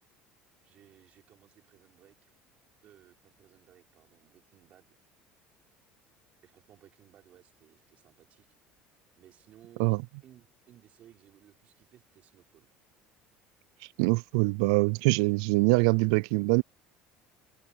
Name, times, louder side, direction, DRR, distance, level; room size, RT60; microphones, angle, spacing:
voice 1, 0.6-2.3 2.8-5.0 6.4-8.6 9.2-12.7, right 11 dB, 45° right, 4.8 m, -59 dB
voice 2, 14.0-16.6, right 29 dB, 90° right, 0.3 m, -24 dB
open air
cardioid pair, 145°, 3 cm